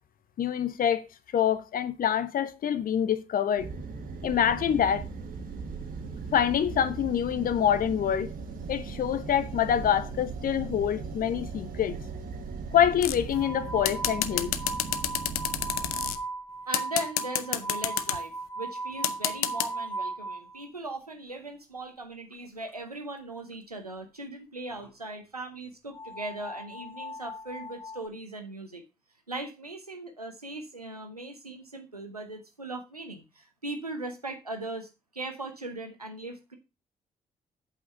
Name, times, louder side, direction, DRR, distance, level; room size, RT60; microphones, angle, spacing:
voice 1, 0.4-1.0 1.3-3.7 4.2-5.1 6.3-8.3 8.7-12.0 12.7-14.5, left 9 dB, 50° left, 0.9 m, -26 dB
sound 1, 3.6-16.2, right 4 dB, 50° right, 1.6 m, -38 dB
sound 2, 13.0-13.3 13.9-16.2 16.7-18.2 19.0-19.7, left 13 dB, 75° left, 0.6 m, -28 dB
sound 3, 13.3-20.7 22.3-22.4 22.7-22.8 23.5-23.6 24.7-24.9 25.9-28.1, right 2 dB, 10° left, 1.8 m, -38 dB
voice 2, 16.7-28.8 29.3-36.6, right 2 dB, 90° right, 0.9 m, -39 dB
8.3 x 5.1 x 5.6 m
figure-of-eight pair, 40°, 19 cm